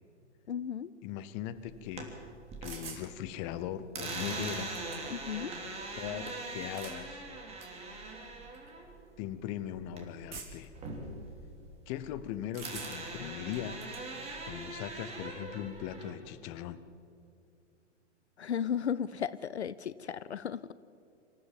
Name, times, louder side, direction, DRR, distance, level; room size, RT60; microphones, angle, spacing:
voice 1, 0.5-0.9 5.1-5.5 18.4-20.7, left 8 dB, 65° left, 17 dB, 0.7 m, -35 dB
voice 2, 1.0-2.2 2.6-4.8 5.9-7.2 9.2-10.7 11.9-13.8 14.4-16.8, left 11 dB, 25° left, 13 dB, 0.8 m, -39 dB
sound 1, 1.7-3.1 3.4-10.3 10.6-12.3 12.6-16.1, right 2 dB, 15° right, 3.2 m, -41 dB
sound 2, 2.6-3.1 4.1-4.2 4.5-5.3 6.5-7.0 7.6-7.7 8.5-8.7 10.3-10.7 12.5-13.1 13.5-14.0, right 5 dB, 50° right, 3.2 m, -46 dB
26.0 x 14.5 x 7.4 m, 2.4 s
figure-of-eight pair, 115°, 36 cm